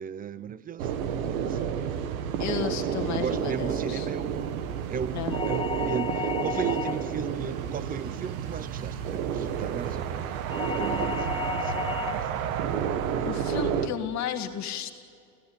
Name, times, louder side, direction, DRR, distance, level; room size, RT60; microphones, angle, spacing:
voice 1, 0.0-1.6 2.6-10.3 10.8-12.3, right 7 dB, 20° right, 0.5 m, -36 dB
sound 1, 0.8-13.9, right 8 dB, 85° right, 1.8 m, -30 dB
voice 2, 2.4-4.1 5.1-5.4 13.3-14.9, left 9 dB, 40° left, 2.1 m, -33 dB
sound 2, 5.3-7.2 10.5-12.3, left 6 dB, 15° left, 0.7 m, -33 dB
25.5 x 16.0 x 8.6 m
supercardioid pair, 125°, 41 cm